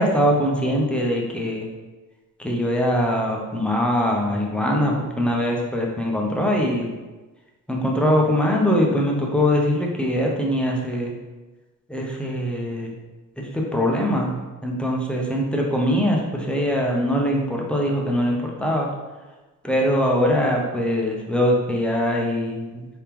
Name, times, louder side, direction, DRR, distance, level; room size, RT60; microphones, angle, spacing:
voice 1, 0.0-1.7 2.4-7.0 7.7-11.1 11.9-12.9 13.4-14.3 14.6-18.9 19.6-22.9, equal, 5° left, -1 dB, 0.5 m, -22 dB
4.7 x 3.5 x 2.9 m, 1.2 s
cardioid pair, 175°, 34 cm